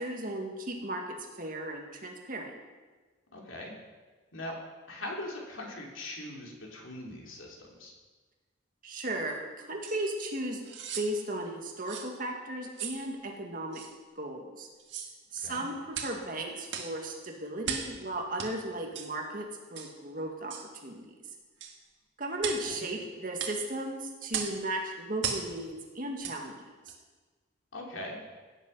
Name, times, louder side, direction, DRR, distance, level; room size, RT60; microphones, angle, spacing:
voice 1, 0.0-2.6 8.8-10.6 11.0-13.8 14.2-14.7 15.3-20.5 20.8-21.1 22.2-26.9, right 1 dB, 45° right, 1 dB, 1.9 m, -36 dB
voice 2, 3.3-3.8 4.3-4.6 4.9-7.9 15.4-15.6 22.7-22.9 27.7-28.2, left 1 dB, 80° left, 0 dB, 2.8 m, -41 dB
sound 1, 9.8-10.0 10.6-11.1 11.9-12.1 12.8-13.0 13.7-13.9 14.8-15.1 15.9-16.2 16.7-16.9 17.6-17.9 18.4-18.5 18.9-19.1 19.7-19.9 20.5-20.7 21.6-21.8 22.4-22.7 23.4-23.6 24.3-24.6 25.2-25.5 26.2-26.4 26.9-27.0, right 7 dB, 60° right, 1.7 m, -36 dB
17.0 x 8.5 x 5.5 m, 1.3 s
head